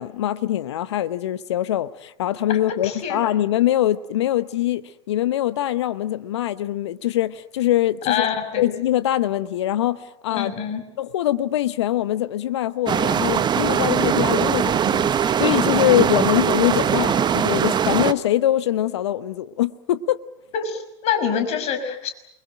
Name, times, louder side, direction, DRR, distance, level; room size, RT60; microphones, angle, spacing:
voice 1, 0.0-8.3 8.6-10.5 11.0-20.2, left 13 dB, 70° left, 0.9 m, -23 dB
voice 2, 2.8-3.3 8.1-8.6 10.3-10.8 20.5-22.1, left 7 dB, 50° left, 5.9 m, -25 dB
sound 1, 12.9-18.1, right 8 dB, 30° right, 1.2 m, -21 dB
28.0 x 22.5 x 7.7 m
hypercardioid pair, 80°, 15 cm